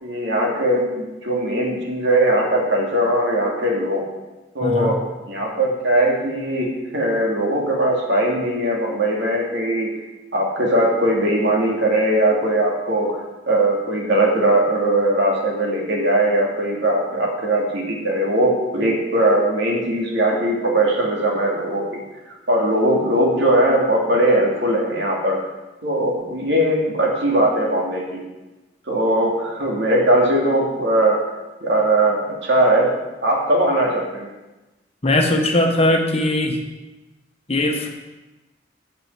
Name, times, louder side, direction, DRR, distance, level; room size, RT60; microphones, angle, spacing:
voice 1, 0.0-4.0 4.5-5.0 5.3-9.9 10.3-13.2 13.5-21.9 22.3-25.4 25.8-28.2 28.9-31.2 31.6-32.9 33.2-34.3, right 1 dB, 65° right, -1 dB, 2.5 m, -20 dB
voice 2, 4.6-5.0 35.0-36.6 37.5-37.9, left 1 dB, 35° left, 3 dB, 1.2 m, -19 dB
9.0 x 6.9 x 7.4 m, 1.1 s
head